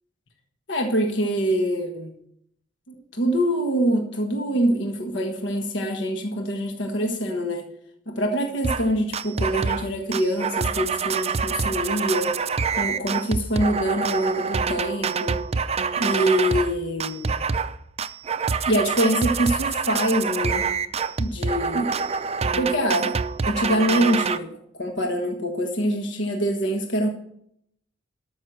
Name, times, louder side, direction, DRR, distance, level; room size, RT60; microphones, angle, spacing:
voice 1, 0.7-2.1 2.9-7.7 8.1-12.4 12.7-15.4 16.0-17.3 18.7-20.6 21.2-21.9 22.6-23.2 23.5-24.5 24.7-27.1, equal, 70° left, 3 dB, 1.4 m, -24 dB
sound 1, 8.6-8.9 9.1-9.9 10.1-16.7 17.0-17.7 18.0-24.4, right 5 dB, 35° right, 0.5 m, -26 dB
13.0 x 6.4 x 6.2 m, 0.70 s
head